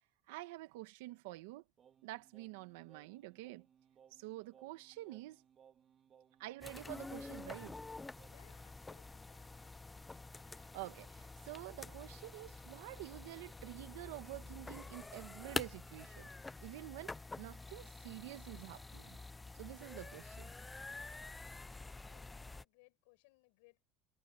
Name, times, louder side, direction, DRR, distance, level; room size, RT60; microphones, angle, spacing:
voice 1, 0.3-1.6 2.0-3.7 4.1-5.4 6.4-7.8 10.5-16.3 16.6-19.2 19.6-20.5, right 18 dB, 85° right, 1.6 m, -48 dB
Singing, 1.8-8.6, right 8 dB, 30° right, 1.9 m, -66 dB
sound 1, 6.6-22.6, left 3 dB, 10° left, 0.4 m, -48 dB
voice 2, 8.2-9.8 21.8-23.9, left 27 dB, 80° left, 6.4 m, -68 dB
cardioid pair, 150°, 0 cm